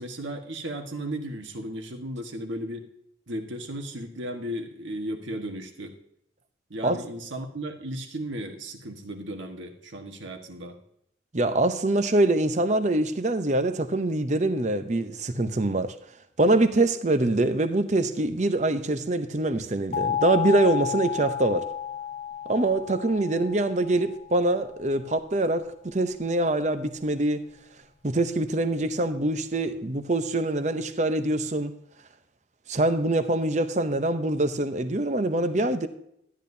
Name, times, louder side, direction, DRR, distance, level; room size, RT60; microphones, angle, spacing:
voice 1, 0.0-2.8 3.3-5.9 6.7-10.8, right 1 dB, 80° right, 1.5 m, -35 dB
voice 2, 11.3-16.0 16.4-21.7 22.5-27.4 28.0-31.8 32.7-35.9, right 2 dB, 35° right, 0.7 m, -24 dB
sound 1, 19.9-24.7, left 9 dB, 40° left, 0.8 m, -32 dB
12.5 x 10.0 x 2.7 m
head